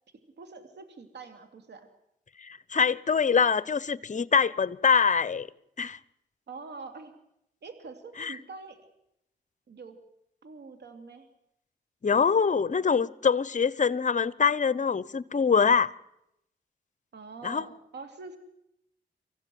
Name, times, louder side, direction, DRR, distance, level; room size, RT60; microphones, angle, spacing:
voice 1, 0.4-1.9 6.5-7.1 7.6-8.8 9.7-10.0 10.4-11.3 17.1-18.4, right 4 dB, 70° right, 2.8 m, -44 dB
voice 2, 2.4-5.5 5.8-6.0 8.2-8.3 12.0-15.9 17.4-17.7, left 6 dB, 45° left, 1.0 m, -24 dB
24.5 x 15.5 x 9.4 m
cardioid pair, 60°, 18 cm